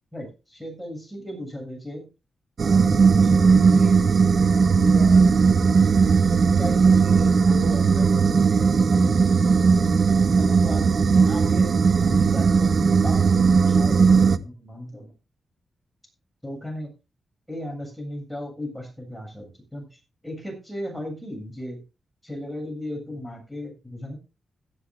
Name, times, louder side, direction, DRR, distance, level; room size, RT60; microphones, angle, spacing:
voice 1, 0.1-2.1 2.6-4.2 4.7-6.0 6.6-9.4 9.8-15.1 16.4-16.9 17.5-21.8 22.2-24.2, equal, ahead, 2 dB, 7.5 m, -36 dB
sound 1, 2.6-14.4, right 5 dB, 55° right, 0.7 m, -18 dB
17.0 x 12.5 x 2.5 m, 0.28 s
wide cardioid pair, 130°, 0 cm